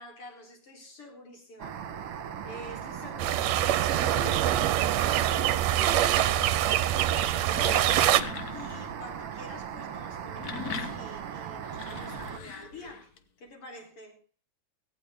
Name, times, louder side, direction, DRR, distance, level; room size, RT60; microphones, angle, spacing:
voice 1, 0.0-2.0 2.4-5.6 6.1-8.0 8.5-14.2, left 2 dB, 50° left, 4.9 m, -46 dB
sound 1, 1.6-12.4, right 8 dB, 55° right, 2.0 m, -38 dB
sound 2, 3.2-8.2, right 12 dB, 70° right, 1.9 m, -24 dB
sound 3, 7.4-9.0 10.1-13.2, left 6 dB, 70° left, 0.9 m, -40 dB
17.5 x 15.5 x 3.7 m
omnidirectional pair, 3.3 m